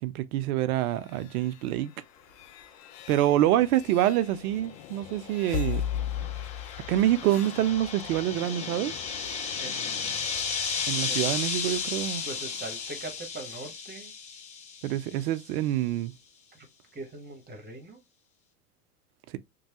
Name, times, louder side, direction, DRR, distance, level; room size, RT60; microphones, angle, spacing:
voice 1, 0.0-1.9 3.1-5.9 6.9-8.9 10.9-12.2 14.8-16.1, right 13 dB, 65° right, 0.6 m, -26 dB
sound 1, 0.8-13.7, left 8 dB, 55° left, 0.6 m, -39 dB
sound 2, 5.5-15.3, left 5 dB, 15° left, 0.3 m, -34 dB
voice 2, 9.6-10.7 11.1-11.2 12.2-14.1 16.5-16.7 16.9-18.0, right 2 dB, 20° right, 1.1 m, -42 dB
3.1 x 2.2 x 2.8 m
hypercardioid pair, 100°, 48 cm